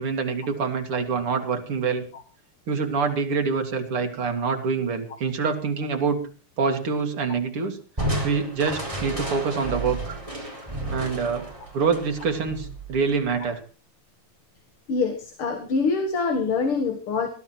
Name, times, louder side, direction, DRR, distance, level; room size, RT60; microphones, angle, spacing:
voice 1, 0.0-2.0 2.7-6.2 6.6-7.8 8.2-10.2 10.9-11.5 11.7-13.6, right 5 dB, 80° right, 4 dB, 3.3 m, -26 dB
Crushing, 8.0-13.4, right 1 dB, 15° right, 4.1 m, -32 dB
voice 2, 14.9-17.3, left 4 dB, 75° left, 6 dB, 2.6 m, -25 dB
20.0 x 12.0 x 4.6 m, 0.36 s
omnidirectional pair, 2.4 m